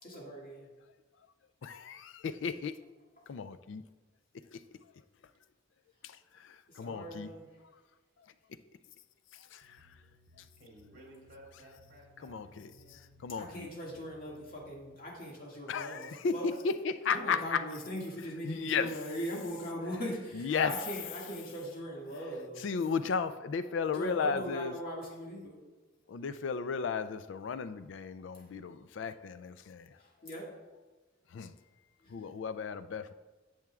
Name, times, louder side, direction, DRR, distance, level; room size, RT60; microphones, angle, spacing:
voice 1, 0.0-0.7 6.7-7.5 13.3-16.5 17.1-22.6 23.9-25.6 30.0-30.5 32.0-32.1, equal, 50° left, -4 dB, 2.0 m, -40 dB
voice 2, 1.6-2.7 3.3-3.8 4.5-4.6 6.0-7.3 9.4-9.8 12.2-13.7 15.7-17.6 18.4-18.9 20.3-20.7 22.6-24.7 26.1-30.0 31.3-31.6 32.1-33.1, left 5 dB, 65° left, 12 dB, 0.4 m, -34 dB
sound 1, 9.6-14.9, left 1 dB, 75° right, 0.8 m, -62 dB
voice 3, 10.6-13.0 13.3-13.4, right 1 dB, 45° right, -2 dB, 2.6 m, -56 dB
10.5 x 7.1 x 2.4 m, 1.2 s
head